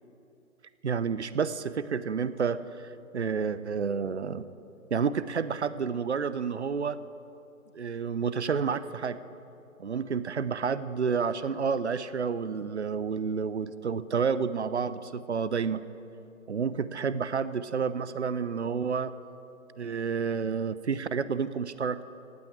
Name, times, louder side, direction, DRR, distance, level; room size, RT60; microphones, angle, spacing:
voice 1, 0.8-4.5 4.9-7.0 7.7-9.2 9.8-15.8 16.5-19.1 19.8-22.0, right 6 dB, 50° right, 15 dB, 0.7 m, -30 dB
16.5 x 8.9 x 8.3 m, 2.7 s
figure-of-eight pair, 150°, 42 cm